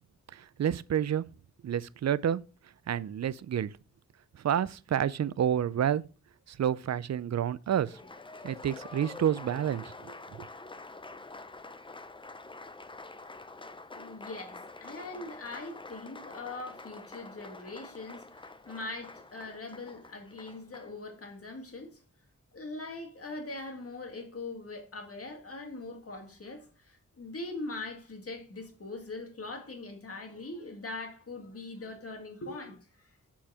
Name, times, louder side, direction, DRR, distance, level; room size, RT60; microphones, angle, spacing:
voice 1, 0.3-1.3 1.6-2.4 2.9-3.7 4.4-6.0 6.5-7.9 8.4-10.1, right 9 dB, 55° right, 0.4 m, -29 dB
Applause, 7.7-21.0, left 3 dB, 15° left, 0.5 m, -47 dB
voice 2, 12.8-13.2 13.6-22.0 22.5-33.1, left 2 dB, 45° left, 1.8 m, -42 dB
7.3 x 4.4 x 4.8 m
wide cardioid pair, 95°, 32 cm